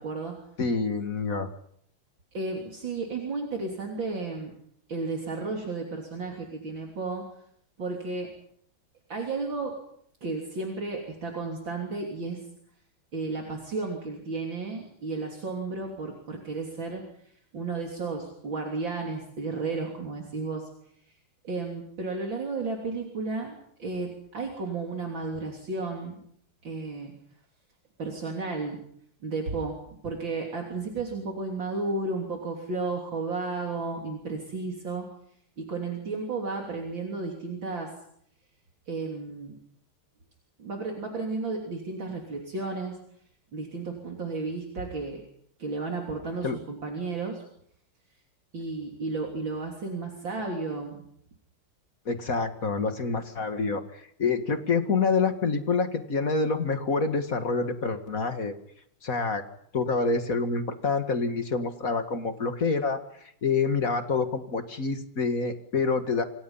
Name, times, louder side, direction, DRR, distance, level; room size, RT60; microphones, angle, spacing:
voice 1, 0.0-0.4 2.3-4.5 4.9-7.3 7.8-8.3 9.1-9.8 10.2-12.4 13.1-17.0 17.5-20.7 21.4-26.2 26.6-27.1 28.0-28.8 29.2-29.8 30.0-35.1 35.6-37.9 38.9-39.6 40.6-43.0 43.5-45.2 45.6-47.4 48.5-51.1, right 3 dB, 60° right, 1 dB, 4.0 m, -33 dB
voice 2, 0.6-1.5 46.4-46.6 52.1-58.5 59.0-59.4 59.7-63.0 63.4-66.2, left 4 dB, 40° left, 8 dB, 2.2 m, -27 dB
27.0 x 26.5 x 5.7 m, 0.68 s
omnidirectional pair, 2.4 m